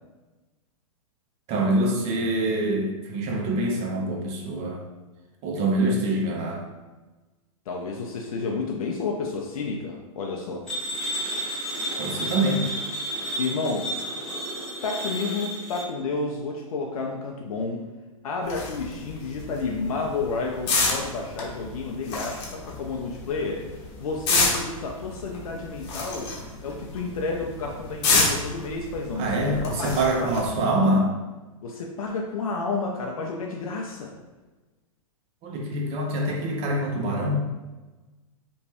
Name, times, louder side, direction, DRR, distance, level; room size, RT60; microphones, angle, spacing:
voice 1, 1.5-4.8 5.4-6.7 12.0-12.7 29.2-31.1 35.4-37.5, right 1 dB, 35° right, 0 dB, 0.6 m, -25 dB
voice 2, 7.7-10.7 13.4-13.9 14.8-17.8 18.2-26.3 26.6-30.3 31.6-34.2, left 4 dB, 80° left, 0 dB, 0.4 m, -31 dB
sound 1, 10.7-15.8, right 1 dB, 5° left, 0.9 m, -31 dB
sound 2, 18.4-30.6, left 3 dB, 45° left, 0.8 m, -29 dB
3.0 x 2.2 x 2.9 m, 1.2 s
hypercardioid pair, 125°, 18 cm